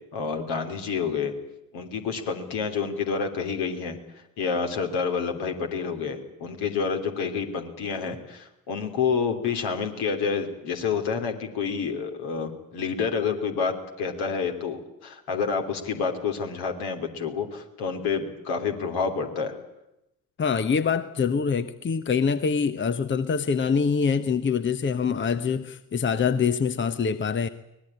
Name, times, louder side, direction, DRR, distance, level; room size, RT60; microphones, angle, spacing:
voice 1, 0.1-1.3 1.7-4.0 4.4-19.5, left 5 dB, 60° left, 5 dB, 3.2 m, -28 dB
voice 2, 20.4-27.5, left 6 dB, 25° left, 13 dB, 1.0 m, -25 dB
23.5 x 19.5 x 8.8 m, 0.87 s
figure-of-eight pair, 50°, 43 cm